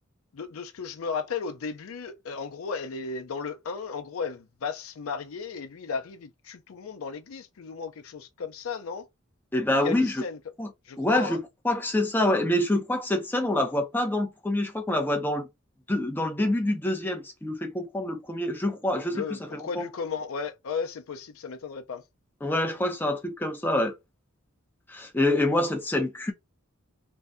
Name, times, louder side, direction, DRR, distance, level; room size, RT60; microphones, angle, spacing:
voice 1, 0.3-9.1 9.7-10.4 10.9-11.4 19.1-22.0, left 5 dB, 85° left, 0.5 m, -35 dB
voice 2, 9.5-10.2 10.6-10.7 11.0-15.5 15.9-19.2 19.5-19.9 22.4-23.9 24.9-26.3, left 1 dB, 10° left, 0.5 m, -26 dB
2.6 x 2.1 x 3.4 m
head